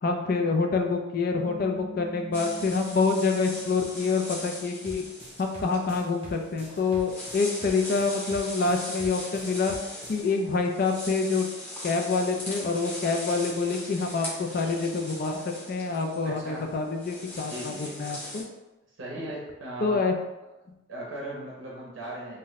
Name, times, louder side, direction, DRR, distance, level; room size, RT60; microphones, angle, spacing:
voice 1, 0.0-5.0 5.4-9.7 10.1-11.5 11.8-18.4 19.8-20.1, left 4 dB, 45° left, 3 dB, 0.3 m, -27 dB
Bass guitar, 1.3-5.1, right 1 dB, 65° left, 1.4 m, -44 dB
sound 1, 2.3-18.4, left 1 dB, 10° left, 0.7 m, -40 dB
sound 2, 4.9-10.2, right 1 dB, 30° right, 0.9 m, -44 dB
voice 2, 16.2-16.7 17.4-18.0 19.0-20.0 20.9-22.4, right 1 dB, 65° right, -4 dB, 0.6 m, -38 dB
2.6 x 2.1 x 3.9 m, 1.0 s
head